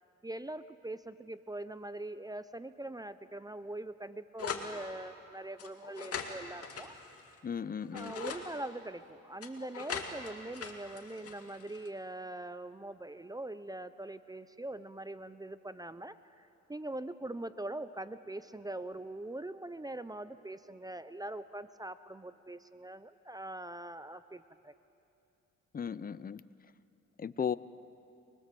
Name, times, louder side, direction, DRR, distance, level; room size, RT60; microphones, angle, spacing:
voice 1, 0.2-7.0 7.9-24.7, right 1 dB, 10° right, 13 dB, 0.6 m, -42 dB
sound 1, 4.4-4.7 5.6-7.4 7.8-8.4 9.4-11.9, left 6 dB, 50° left, 2.4 m, -41 dB
voice 2, 7.4-8.1 25.7-26.4 27.2-27.6, left 7 dB, 30° left, 17 dB, 0.6 m, -35 dB
24.5 x 21.5 x 7.7 m, 2.7 s
cardioid pair, 90°, 30 cm